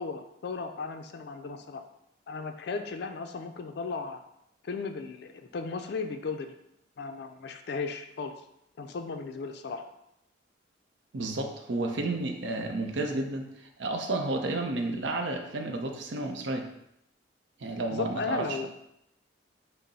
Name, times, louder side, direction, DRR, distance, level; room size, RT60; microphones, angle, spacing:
voice 1, 0.0-1.8 2.3-4.2 4.6-6.5 7.0-8.3 8.8-9.8 17.9-18.7, left 4 dB, 60° left, 6 dB, 0.4 m, -35 dB
voice 2, 11.1-13.5 13.8-16.7 17.6-18.7, right 2 dB, 70° right, 4 dB, 0.6 m, -31 dB
5.3 x 2.0 x 4.0 m, 0.79 s
head